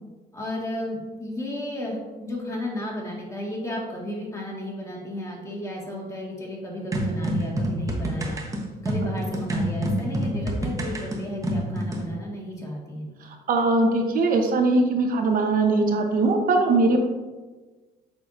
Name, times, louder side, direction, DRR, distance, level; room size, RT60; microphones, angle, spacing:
voice 1, 0.3-8.4 8.8-13.1, left 1 dB, 20° left, -2 dB, 1.7 m, -33 dB
sound 1, 6.9-12.1, right 1 dB, 20° right, 1.0 m, -27 dB
voice 2, 13.2-17.0, right 3 dB, 55° right, 3 dB, 0.9 m, -21 dB
7.0 x 5.6 x 2.6 m, 1.3 s
cardioid pair, 110°, 17 cm